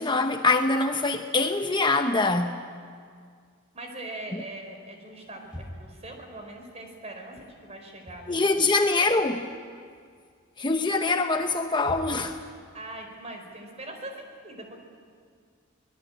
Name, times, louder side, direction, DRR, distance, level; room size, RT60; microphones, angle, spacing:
voice 1, 0.0-2.6 4.3-4.4 8.3-9.5 10.6-12.4, left 3 dB, 25° left, 0.9 m, -24 dB
voice 2, 3.7-8.5 12.7-14.8, right 2 dB, 35° right, 4.7 m, -41 dB
sound 1, 5.5-6.1 7.9-8.3 8.6-9.6 9.9-10.3 11.0-12.4, equal, 5° right, 3.6 m, -43 dB
25.5 x 20.0 x 8.9 m
head